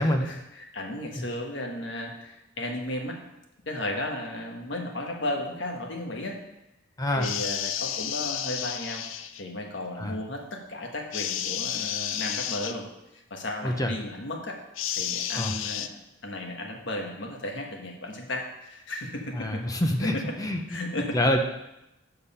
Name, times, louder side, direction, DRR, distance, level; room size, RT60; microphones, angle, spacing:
voice 1, 0.2-3.2 3.6-6.4 7.1-9.1 9.4-14.6 14.9-15.9 16.2-19.6 20.0-20.3 20.7-21.2, left 1 dB, 70° left, 2 dB, 1.4 m, -34 dB
voice 2, 7.0-7.3 10.0-10.2 13.6-13.9 15.4-15.5 19.3-20.6 21.1-21.4, left 1 dB, 20° left, 4 dB, 0.6 m, -26 dB
sound 1, 7.2-9.4 11.1-12.8 14.8-15.9, left 10 dB, 90° left, 0.5 m, -31 dB
7.3 x 6.7 x 5.5 m, 0.92 s
head